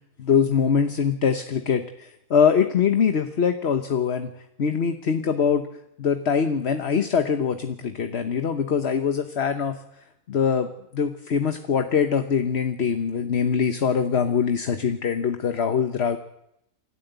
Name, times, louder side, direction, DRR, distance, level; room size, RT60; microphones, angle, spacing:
voice 1, 0.2-4.3 4.6-5.7 6.0-9.8 10.3-10.7 10.9-16.2, left 6 dB, 50° left, 8 dB, 1.3 m, -23 dB
28.0 x 13.0 x 8.1 m, 0.80 s
omnidirectional pair, 1.4 m